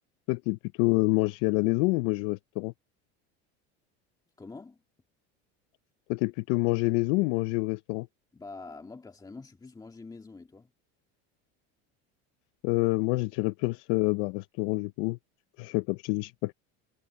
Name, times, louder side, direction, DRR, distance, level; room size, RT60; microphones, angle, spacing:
voice 1, 0.3-2.7 6.1-8.1 12.6-15.2 15.6-16.5, left 25 dB, 75° left, 0.7 m, -27 dB
voice 2, 4.4-4.8 8.3-10.7, left 3 dB, 10° left, 2.0 m, -45 dB
cardioid pair, 135°, 32 cm